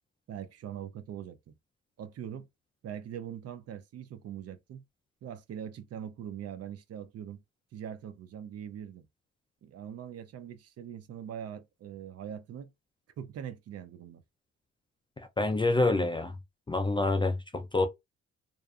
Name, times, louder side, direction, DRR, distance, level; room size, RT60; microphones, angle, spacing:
voice 1, 0.3-1.6 2.0-2.5 2.8-4.8 5.2-7.4 7.7-9.1 9.6-12.7 13.2-14.2, right 9 dB, 55° right, 0.5 m, -42 dB
voice 2, 15.2-16.4 16.7-17.9, left 2 dB, 15° left, 0.3 m, -27 dB
2.5 x 2.3 x 2.4 m
cardioid pair, 90°, 30 cm